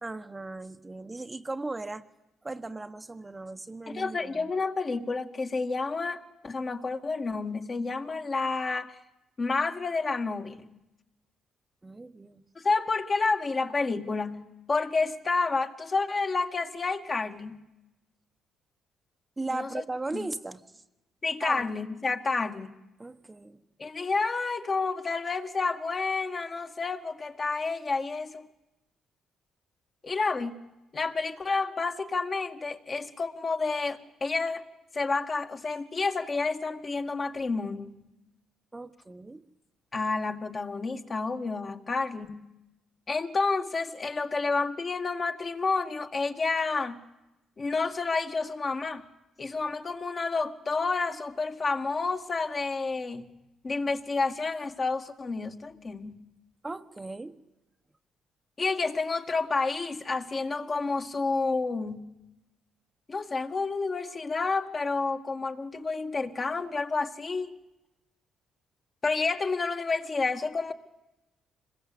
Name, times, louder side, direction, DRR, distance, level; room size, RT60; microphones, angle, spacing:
voice 1, 0.0-2.0 2.4-4.5 11.8-12.4 19.4-20.8 21.4-21.6 23.0-23.6 38.7-39.4 56.6-57.4, right 2 dB, 20° right, 7 dB, 1.2 m, -37 dB
voice 2, 3.9-9.0 9.4-10.7 12.6-17.6 19.5-19.8 20.1-20.3 21.2-22.8 23.8-28.5 30.0-30.6 30.9-34.6 34.9-38.0 39.9-42.5 43.1-47.0 47.6-49.0 49.4-53.3 53.6-56.2 58.6-62.1 63.1-67.5 69.0-70.7, left 4 dB, 35° left, 5 dB, 1.9 m, -30 dB
26.0 x 21.5 x 8.6 m, 0.96 s
cardioid pair, 90°, 0 cm